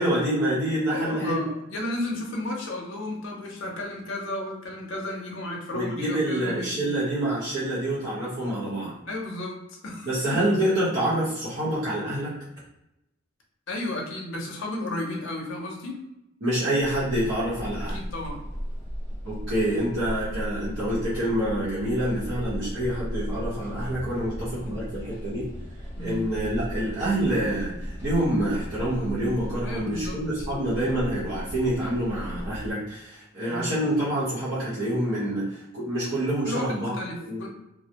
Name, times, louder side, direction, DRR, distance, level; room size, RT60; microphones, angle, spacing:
voice 1, 0.0-1.4 5.7-9.0 10.0-12.3 16.4-18.0 19.2-25.5 26.0-37.0 37.3-37.4, right 1 dB, 55° right, -11 dB, 0.9 m, -27 dB
voice 2, 0.9-6.9 9.1-10.1 13.7-16.0 17.9-18.5 26.0-26.3 29.6-30.2 33.5-33.7 36.5-37.5, left 1 dB, 60° left, 0 dB, 0.6 m, -33 dB
sound 1, 16.8-32.7, equal, 10° left, 0.8 m, -36 dB
2.2 x 2.1 x 2.8 m, 0.88 s
head